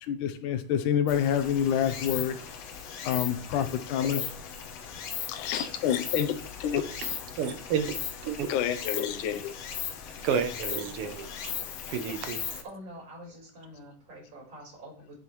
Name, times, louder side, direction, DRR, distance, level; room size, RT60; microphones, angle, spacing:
voice 1, 0.0-2.4 3.0-4.3 5.1-6.8 8.5-9.5, left 9 dB, 80° left, 10 dB, 2.3 m, -28 dB
Stream, 1.1-12.6, left 8 dB, 65° left, 1.9 m, -38 dB
voice 2, 6.8-7.9 8.2-8.5 10.2-11.5 11.9-12.4, right 7 dB, 70° right, 8 dB, 1.4 m, -31 dB
voice 3, 12.6-15.1, equal, 50° right, -4 dB, 6.0 m, -46 dB
11.5 x 7.3 x 3.2 m, 0.43 s
omnidirectional pair, 3.6 m